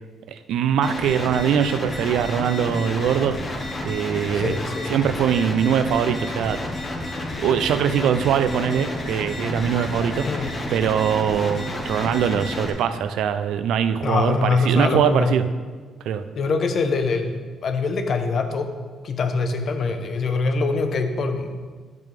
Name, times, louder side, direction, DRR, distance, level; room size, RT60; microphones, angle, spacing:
voice 1, 0.3-3.4 3.8-4.6 4.9-6.6 7.4-10.4 10.7-15.4 16.0-16.2, right 8 dB, 80° right, 11 dB, 0.5 m, -22 dB
sound 1, 0.8-12.7, left 1 dB, 40° left, 1.6 m, -31 dB
voice 2, 4.3-4.9 10.2-10.5 14.0-15.4 16.4-18.7 19.0-21.6, left 3 dB, 55° left, 6 dB, 0.9 m, -23 dB
10.0 x 6.6 x 3.4 m, 1.4 s
cardioid pair, 90°, 0 cm